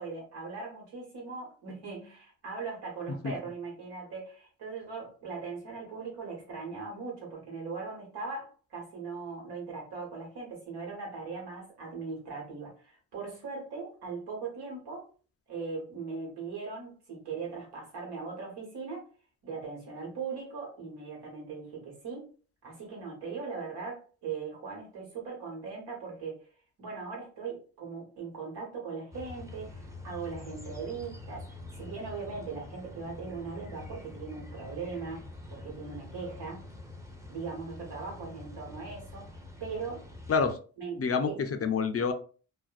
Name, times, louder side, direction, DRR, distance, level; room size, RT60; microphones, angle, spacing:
voice 1, 0.0-15.1 15.5-19.0 19.4-22.3 22.6-26.4 26.8-36.7 37.3-40.0 40.8-41.4, right 4 dB, 85° right, -2 dB, 1.3 m, -39 dB
sound 1, 29.1-40.6, left 2 dB, 10° right, 0.6 m, -46 dB
voice 2, 41.0-42.1, left 5 dB, 40° left, 8 dB, 0.4 m, -27 dB
2.5 x 2.1 x 2.3 m, 0.39 s
cardioid pair, 55°, 39 cm